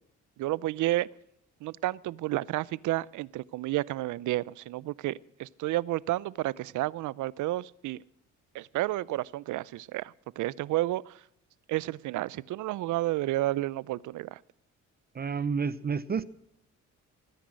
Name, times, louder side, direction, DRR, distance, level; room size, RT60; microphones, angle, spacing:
voice 1, 0.4-1.1 1.6-8.0 8.5-11.2 11.7-14.4, right 16 dB, 80° right, 22 dB, 0.6 m, -31 dB
voice 2, 15.1-16.3, right 5 dB, 30° right, 17 dB, 0.7 m, -30 dB
19.0 x 10.0 x 6.4 m, 0.71 s
cardioid pair, 90°, 30 cm